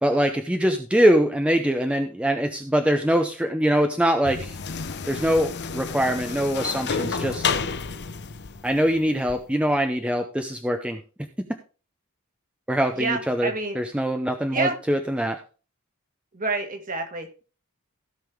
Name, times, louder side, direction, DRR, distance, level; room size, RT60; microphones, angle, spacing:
voice 1, 0.0-4.6 5.1-7.4 8.6-11.0 12.7-15.4, equal, 5° right, 5 dB, 0.6 m, -23 dB
sound 1, 4.2-9.4, left 5 dB, 50° left, 0.8 m, -30 dB
voice 2, 13.0-13.8 14.5-14.7 16.3-17.4, right 3 dB, 40° right, 5 dB, 1.9 m, -28 dB
16.0 x 5.4 x 3.5 m, 0.35 s
head